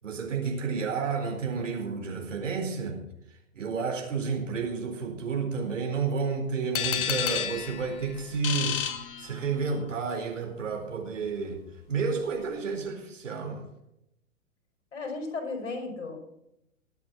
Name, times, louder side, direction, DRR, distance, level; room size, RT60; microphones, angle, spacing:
voice 1, 0.0-3.0 3.5-8.8 9.2-11.6 11.9-13.7, right 5 dB, 65° right, 2 dB, 4.3 m, -31 dB
sound 1, 6.7-9.8, left 9 dB, 40° left, 1.4 m, -31 dB
voice 2, 14.9-16.2, left 3 dB, 60° left, 3 dB, 5.2 m, -34 dB
22.0 x 8.5 x 4.4 m, 0.82 s
figure-of-eight pair, 110°, 40 cm